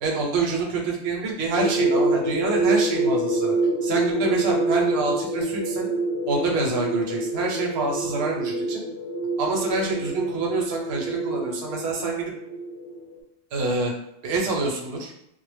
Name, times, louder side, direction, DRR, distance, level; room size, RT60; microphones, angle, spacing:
voice 1, 0.0-3.5 3.8-5.9 6.3-8.8 9.4-12.3 13.5-13.9 14.2-15.1, right 3 dB, 70° right, -1 dB, 0.8 m, -26 dB
sound 1, 1.5-13.2, right 2 dB, 60° left, 0.7 m, -26 dB
2.0 x 2.0 x 3.2 m, 0.76 s
omnidirectional pair, 1.1 m